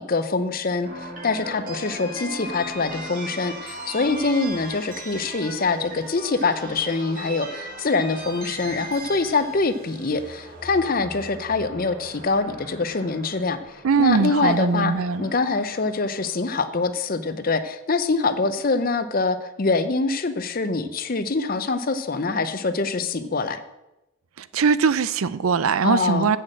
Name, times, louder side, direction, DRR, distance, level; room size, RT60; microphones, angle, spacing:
voice 1, 0.0-14.9 15.2-23.6 25.8-26.3, left 3 dB, 40° left, 0.6 m, -24 dB
sound 1, 0.8-17.0, right 1 dB, 40° right, 1.8 m, -38 dB
voice 2, 13.8-15.3 24.4-26.4, right 5 dB, 80° right, 0.5 m, -21 dB
8.1 x 6.5 x 7.5 m
head